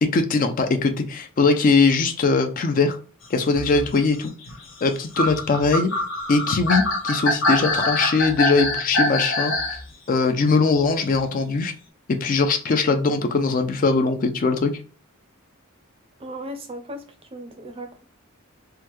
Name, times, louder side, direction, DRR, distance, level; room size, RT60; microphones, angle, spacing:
voice 1, 0.0-3.0 3.3-4.3 4.8-5.9 6.3-9.5 10.1-11.7 12.1-14.7, left 4 dB, 40° left, 0.4 m, -21 dB
sound 1, 3.4-9.8 11.1-11.2, left 2 dB, 65° left, 0.9 m, -24 dB
voice 2, 16.2-17.0 17.3-18.0, right 1 dB, 25° right, 0.5 m, -36 dB
3.5 x 2.1 x 2.9 m
head